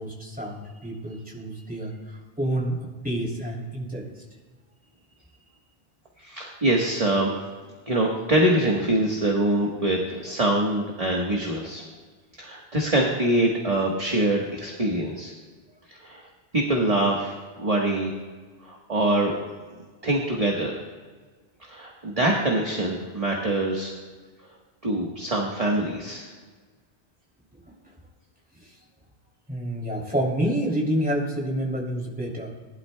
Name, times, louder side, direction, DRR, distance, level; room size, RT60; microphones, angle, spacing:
voice 1, 0.0-2.8 3.0-4.1 27.5-27.6 29.5-32.5, right 1 dB, 10° right, -3 dB, 2.8 m, -28 dB
voice 2, 6.2-7.4 7.9-11.8 12.4-15.3 15.9-16.2 16.5-18.1 18.6-19.3 20.0-20.8 21.7-23.9 24.8-26.3, right 1 dB, 35° right, -1 dB, 1.3 m, -24 dB
19.0 x 11.5 x 2.2 m, 1.4 s
omnidirectional pair, 1.1 m